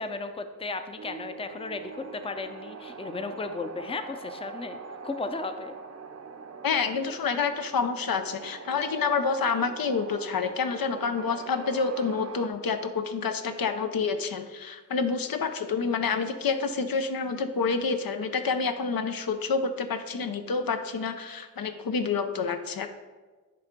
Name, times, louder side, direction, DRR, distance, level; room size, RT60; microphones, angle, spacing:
voice 1, 0.0-5.8, left 3 dB, 15° left, 8 dB, 0.5 m, -35 dB
sound 1, 1.0-12.5, right 5 dB, 45° right, 0.6 m, -43 dB
voice 2, 6.6-22.9, left 5 dB, 75° left, 8 dB, 0.7 m, -28 dB
9.9 x 3.4 x 5.2 m, 1.3 s
wide cardioid pair, 75°, 35 cm